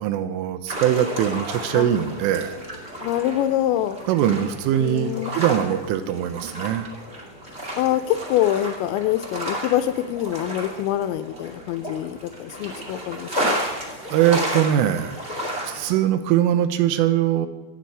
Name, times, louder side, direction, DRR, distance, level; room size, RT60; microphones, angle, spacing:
voice 1, 0.0-2.6 4.1-6.9 14.1-15.1 15.7-17.5, right 11 dB, 90° right, 10 dB, 3.5 m, -22 dB
sound 1, 0.7-16.0, equal, 25° right, 1.3 m, -32 dB
voice 2, 3.0-4.0 4.8-5.3 7.7-13.6, left 12 dB, 80° left, 9 dB, 2.7 m, -25 dB
25.0 x 8.6 x 4.8 m, 1.2 s
omnidirectional pair, 5.6 m